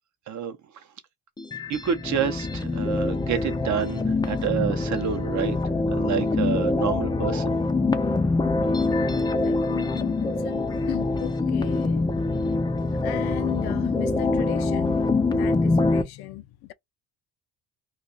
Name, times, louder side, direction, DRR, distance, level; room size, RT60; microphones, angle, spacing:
voice 1, 0.3-0.8 1.7-5.6 5.9-7.6, right 8 dB, 45° right, 0.7 m, -28 dB
sound 1, 1.4-16.0, left 3 dB, 10° left, 0.4 m, -25 dB
voice 2, 9.5-12.1 12.4-12.5 13.0-16.4, left 16 dB, 70° left, 0.5 m, -35 dB
2.4 x 2.3 x 3.8 m
cardioid pair, 120°, 41 cm